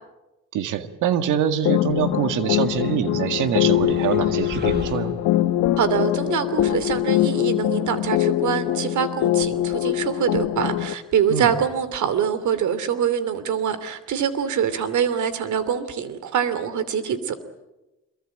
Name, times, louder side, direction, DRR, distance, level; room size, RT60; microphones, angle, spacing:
voice 1, 0.5-5.1 11.3-11.5, right 9 dB, 90° right, 9 dB, 1.9 m, -24 dB
sound 1, 1.6-10.9, left 14 dB, 90° left, 1.3 m, -23 dB
sound 2, 2.5-5.8, right 3 dB, 35° right, 3.2 m, -39 dB
voice 2, 5.8-17.3, right 8 dB, 70° right, 13 dB, 2.9 m, -24 dB
25.5 x 22.5 x 9.0 m, 1.0 s
cardioid pair, 90°, 30 cm